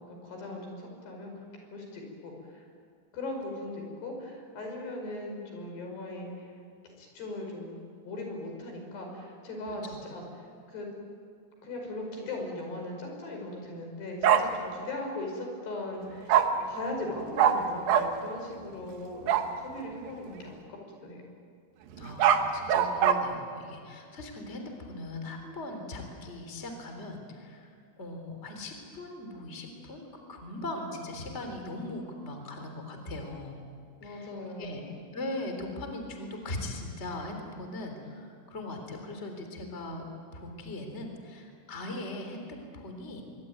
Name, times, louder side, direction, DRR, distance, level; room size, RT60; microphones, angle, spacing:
voice 1, 0.0-1.4 1.7-2.7 3.1-6.5 7.0-7.8 8.1-10.9 11.6-16.4 16.7-21.2 34.0-34.9, left 2 dB, 75° left, 2 dB, 7.2 m, -39 dB
Bark, 14.2-14.4 16.3-16.4 17.4-17.5 17.9-18.0 19.3-19.5 22.0-23.1, right 9 dB, 65° right, 2.9 m, -21 dB
voice 2, 22.0-33.5 34.0-34.3 34.6-34.8 35.1-40.0 40.3-43.2, left 2 dB, 15° left, 4 dB, 3.4 m, -39 dB
24.5 x 23.5 x 9.5 m, 2.2 s
omnidirectional pair, 4.7 m